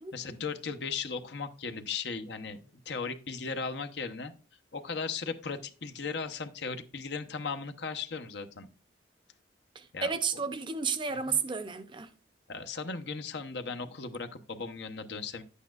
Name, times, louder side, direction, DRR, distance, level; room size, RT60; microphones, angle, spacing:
voice 1, 0.1-4.3 4.7-8.7 9.9-10.1 11.1-11.4 12.5-15.4, left 5 dB, 70° left, 0.8 m, -37 dB
voice 2, 9.8-12.1, right 5 dB, 25° right, 0.5 m, -32 dB
10.5 x 8.3 x 2.4 m
head